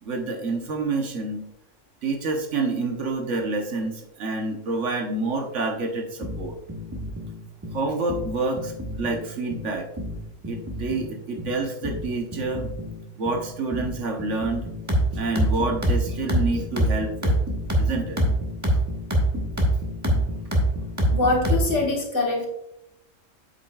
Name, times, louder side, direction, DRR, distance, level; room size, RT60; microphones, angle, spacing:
voice 1, 0.0-1.5 2.0-6.6 7.7-9.9 10.5-12.7 13.2-14.7 15.1-17.4 17.8-18.2, right 3 dB, 65° right, 3 dB, 1.3 m, -28 dB
sound 1, 6.2-21.9, equal, 15° right, 1.3 m, -26 dB
voice 2, 21.1-22.5, left 2 dB, 65° left, -1 dB, 1.9 m, -23 dB
8.3 x 7.6 x 2.3 m, 0.85 s
omnidirectional pair, 1.3 m